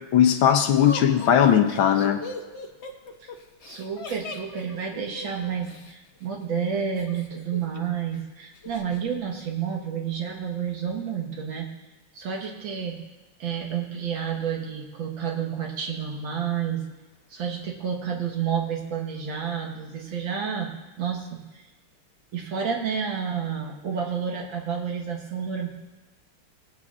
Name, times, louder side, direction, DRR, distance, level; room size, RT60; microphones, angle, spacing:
voice 1, 0.1-2.2, left 9 dB, 75° left, 6 dB, 1.7 m, -19 dB
Laughter, 0.9-5.9 7.0-7.8 8.1-8.2 8.6-9.0, left 4 dB, 50° left, 0.8 m, -38 dB
voice 2, 3.6-11.7 12.1-13.0 13.4-16.9 17.3-20.7 21.0-21.6 22.3-25.7, right 7 dB, 65° right, 1 dB, 2.1 m, -30 dB
18.5 x 8.7 x 2.4 m, 1.1 s
omnidirectional pair, 2.3 m